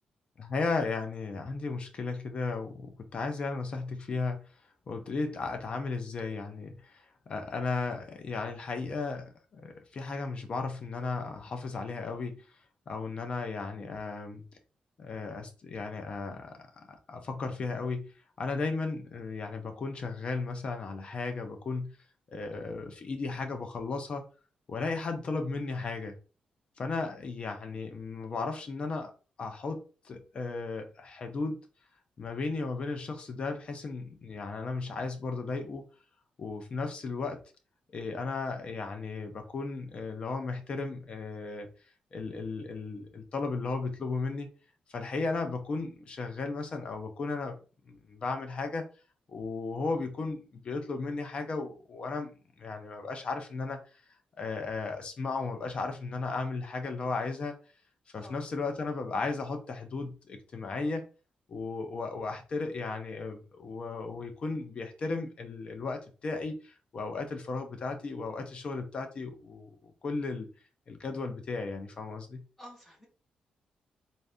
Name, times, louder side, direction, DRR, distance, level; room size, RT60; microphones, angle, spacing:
voice 1, 0.4-4.4 4.9-12.4 12.9-14.4 15.0-18.1 18.4-22.0 22.3-24.3 24.7-26.1 26.8-29.1 29.4-31.6 32.2-35.9 36.4-37.4 37.9-41.7 42.1-44.5 44.9-47.6 47.9-48.9 49.3-52.3 52.6-53.8 54.4-57.5 58.1-61.0 61.5-70.5 70.9-72.4, left 3 dB, 40° left, 0.7 m, -35 dB
voice 2, 72.6-73.1, equal, 10° left, 1.6 m, -50 dB
3.9 x 2.6 x 3.6 m
wide cardioid pair, 150°, 3 cm